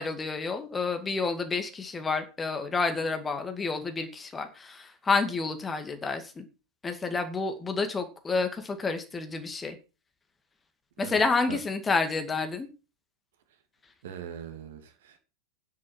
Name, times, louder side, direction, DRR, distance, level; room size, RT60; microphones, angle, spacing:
voice 1, 0.0-6.4 6.8-9.8 11.0-12.7, left 4 dB, 15° left, 7 dB, 2.1 m, -29 dB
voice 2, 14.0-15.2, right 9 dB, 55° right, 6 dB, 2.5 m, -41 dB
9.9 x 7.5 x 6.3 m, 0.32 s
figure-of-eight pair, 90°, 0 cm